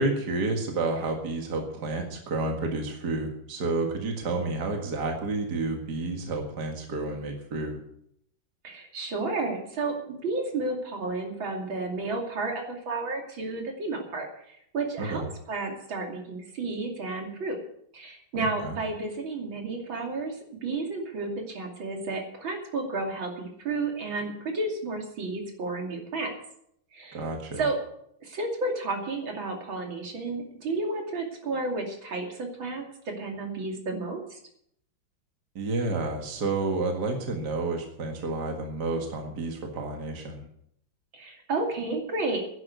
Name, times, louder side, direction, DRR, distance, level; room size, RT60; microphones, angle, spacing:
voice 1, 0.0-7.8 15.0-15.2 18.3-18.8 27.1-27.6 35.6-40.4, right 3 dB, 55° right, 2 dB, 2.4 m, -30 dB
voice 2, 8.6-17.6 17.9-26.3 26.9-27.2 27.6-27.8 28.2-32.9 33.2-34.4 41.1-42.4, right 3 dB, 85° right, 1 dB, 3.4 m, -32 dB
11.0 x 10.5 x 8.1 m, 0.71 s
omnidirectional pair, 2.1 m